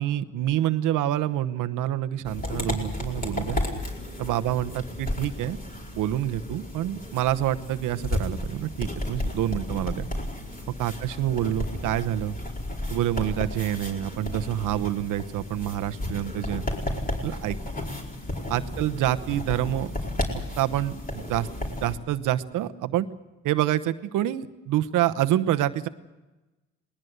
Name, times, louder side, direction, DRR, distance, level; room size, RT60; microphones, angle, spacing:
voice 1, 0.0-3.6 4.2-5.6 5.9-10.1 10.7-12.4 12.9-16.6 17.2-17.6 18.5-19.9 20.6-21.5 21.8-23.1 23.4-25.9, right 12 dB, 85° right, 11 dB, 1.0 m, -27 dB
sound 1, 2.2-22.0, left 1 dB, 30° left, 4.8 m, -33 dB
20.5 x 20.0 x 8.0 m, 1.1 s
cardioid pair, 90°, 30 cm